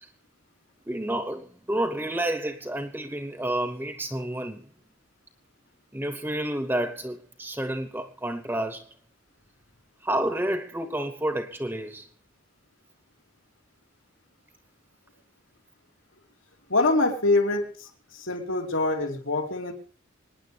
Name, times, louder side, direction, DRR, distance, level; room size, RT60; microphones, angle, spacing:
voice 1, 0.9-4.7 5.9-8.9 10.0-12.1, right 1 dB, 10° right, 1.0 m, -30 dB
voice 2, 16.7-19.7, left 2 dB, 80° left, 2.9 m, -25 dB
26.0 x 10.0 x 3.4 m
head